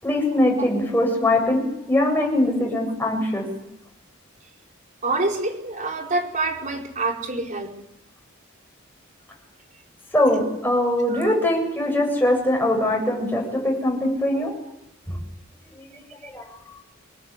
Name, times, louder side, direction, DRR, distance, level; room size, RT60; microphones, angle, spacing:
voice 1, 0.0-3.4 10.1-14.5 15.1-15.2 15.8-16.5, left 1 dB, 10° left, 0 dB, 7.6 m, -22 dB
voice 2, 5.0-7.7 11.1-11.3, right 2 dB, 40° right, 2 dB, 4.7 m, -26 dB
25.0 x 20.0 x 8.4 m, 0.84 s
head